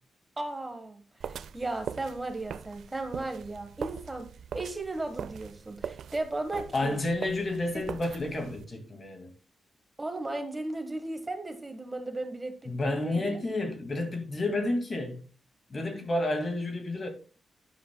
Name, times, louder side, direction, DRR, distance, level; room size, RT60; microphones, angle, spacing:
voice 1, 0.4-4.3 4.5-7.0 7.7-7.8 10.0-13.4, right 2 dB, 15° right, 1.3 m, -36 dB
sound 1, 1.2-8.6, right 7 dB, 85° right, 0.4 m, -41 dB
voice 2, 6.7-9.3 12.7-15.2 15.7-17.1, left 2 dB, 35° left, 2.0 m, -30 dB
12.0 x 10.0 x 2.2 m
wide cardioid pair, 145°, 0 cm